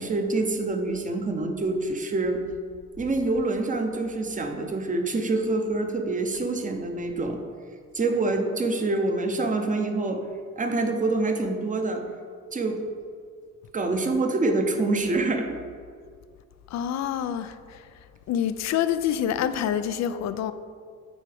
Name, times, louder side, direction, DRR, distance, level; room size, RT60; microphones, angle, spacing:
voice 1, 0.0-2.4 3.0-7.4 7.9-10.2 10.6-12.0 12.5-12.8 13.7-15.6, right 2 dB, 25° right, 5 dB, 0.8 m, -26 dB
voice 2, 16.7-17.9 18.3-20.5, left 9 dB, 60° left, 12 dB, 0.5 m, -27 dB
9.1 x 4.5 x 3.5 m, 2.1 s
cardioid pair, 90°, 30 cm